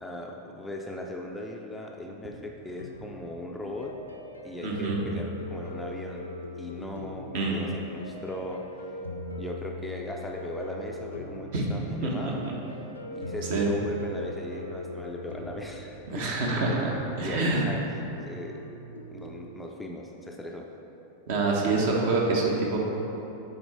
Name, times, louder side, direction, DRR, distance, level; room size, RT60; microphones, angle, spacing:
voice 1, 0.0-3.9 4.4-6.3 6.6-9.0 9.4-12.4 13.1-16.3 17.2-17.9 18.3-18.6 19.1-20.6, left 1 dB, 5° left, 0 dB, 0.5 m, -38 dB
sound 1, 2.8-19.5, equal, 80° left, 0.6 m, -40 dB
voice 2, 4.6-5.0 7.3-7.6 11.5-11.6 12.0-12.1 13.5-13.7 16.1-17.6 21.3-22.8, right 3 dB, 55° right, -2 dB, 1.1 m, -26 dB
6.9 x 4.0 x 4.5 m, 3.0 s
figure-of-eight pair, 90°, 0 cm